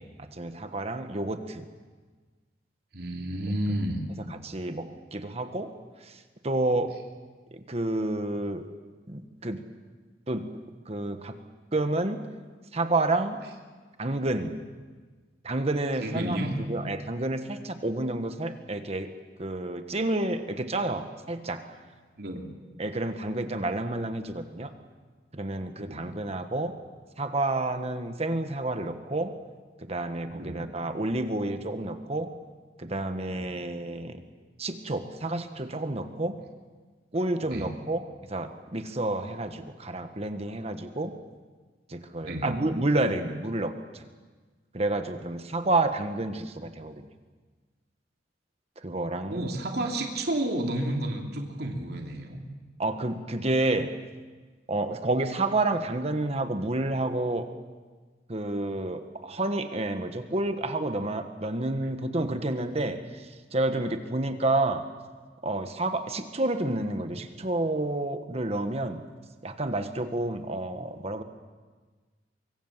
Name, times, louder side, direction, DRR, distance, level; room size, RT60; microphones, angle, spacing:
voice 1, 0.0-1.6 4.4-5.7 6.4-6.9 7.5-8.7 9.1-9.6 10.3-10.5 10.9-11.3 11.7-12.2 12.7-13.4 14.0-14.7 15.4-16.4 16.7-19.1 19.4-21.6 22.8-24.7 25.3-26.7 27.2-29.3 29.8-32.3 32.8-34.2 34.6-36.4 37.1-38.0 38.3-41.1 41.9-44.1 44.7-47.0 48.8-49.4 52.8-53.9 54.7-57.5 58.3-63.0 63.5-64.8 65.4-69.0 69.4-71.2, right 2 dB, 35° right, 8 dB, 1.4 m, -29 dB
voice 2, 2.9-4.0 16.0-16.5 22.2-22.5 25.8-26.1 30.3-30.6 33.3-33.5 37.5-37.7 42.2-42.5 49.3-52.4 61.8-61.9, right 1 dB, 60° right, 1 dB, 2.9 m, -31 dB
24.5 x 23.5 x 7.4 m, 1.4 s
head